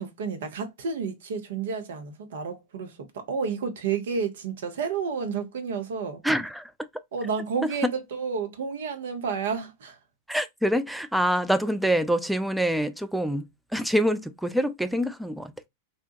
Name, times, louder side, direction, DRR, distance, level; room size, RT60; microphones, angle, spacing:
voice 1, 0.0-6.2 7.1-10.0, right 5 dB, 60° right, 0.7 m, -31 dB
voice 2, 6.2-6.7 10.3-13.5 13.7-15.7, equal, ahead, 0.3 m, -25 dB
2.7 x 2.2 x 2.6 m
figure-of-eight pair, 90°, 0 cm